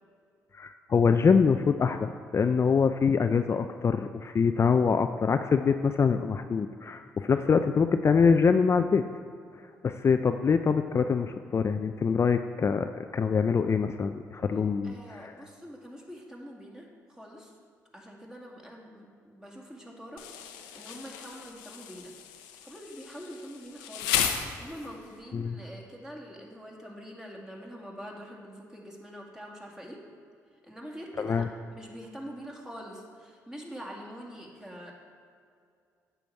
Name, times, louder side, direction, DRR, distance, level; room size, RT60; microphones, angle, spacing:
voice 1, 0.5-9.0 9.8-15.3 25.3-25.6 31.2-31.5, left 5 dB, 40° left, 8 dB, 0.4 m, -24 dB
voice 2, 14.8-17.5 17.9-22.1 22.6-24.2 24.6-30.0 30.6-31.4 31.7-34.9, equal, 10° right, -2 dB, 2.1 m, -44 dB
Insect, 20.2-25.1, left 9 dB, 90° left, 0.6 m, -34 dB
9.1 x 7.0 x 4.6 m, 2.3 s
supercardioid pair, 55°, 7 cm